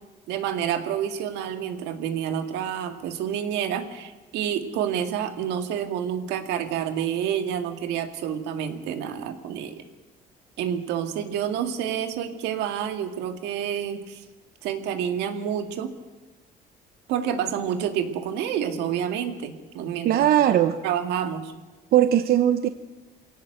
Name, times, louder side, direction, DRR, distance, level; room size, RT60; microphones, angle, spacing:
voice 1, 0.3-9.8 10.6-14.2 14.6-16.0 17.1-20.3 20.8-21.5, right 9 dB, 85° right, 7 dB, 2.1 m, -28 dB
voice 2, 20.0-20.8 21.9-22.7, right 11 dB, 60° right, 10 dB, 0.9 m, -19 dB
23.0 x 17.5 x 8.0 m, 1.2 s
cardioid pair, 110°, 17 cm